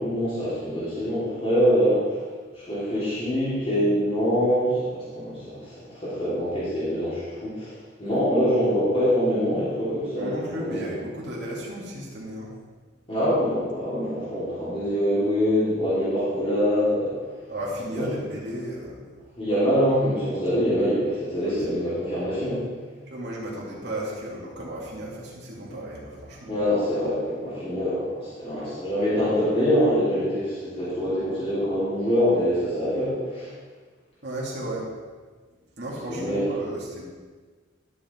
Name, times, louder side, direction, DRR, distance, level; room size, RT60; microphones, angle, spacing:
voice 1, 0.0-2.2 2.5-10.9 13.1-17.1 17.9-18.2 19.4-22.7 26.5-33.5 36.1-36.4, equal, 30° left, -12 dB, 3.2 m, -24 dB
voice 2, 10.2-12.5 17.5-19.1 21.4-21.6 23.1-26.6 34.2-34.9 35.8-37.0, right 1 dB, 55° right, -5 dB, 2.4 m, -34 dB
12.0 x 6.0 x 4.6 m, 1.4 s
head